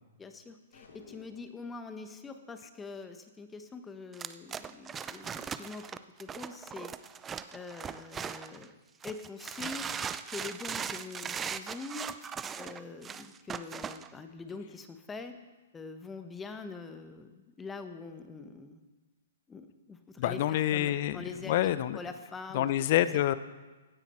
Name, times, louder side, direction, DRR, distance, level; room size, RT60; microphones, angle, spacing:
voice 1, 0.2-5.8 6.2-6.9 7.5-8.8 9.0-9.9 10.3-12.1 12.5-15.4 15.7-18.8 19.5-22.9, left 4 dB, 15° left, 8 dB, 1.2 m, -44 dB
sound 1, 0.7-1.8, left 4 dB, 80° left, 2.6 m, -54 dB
sound 2, 4.1-8.6 9.0-14.1, right 7 dB, 15° right, 0.5 m, -39 dB
voice 2, 20.2-22.0 22.5-23.3, left 13 dB, 50° left, 15 dB, 0.6 m, -27 dB
16.5 x 9.8 x 4.4 m, 1.2 s
hypercardioid pair, 125°, 0 cm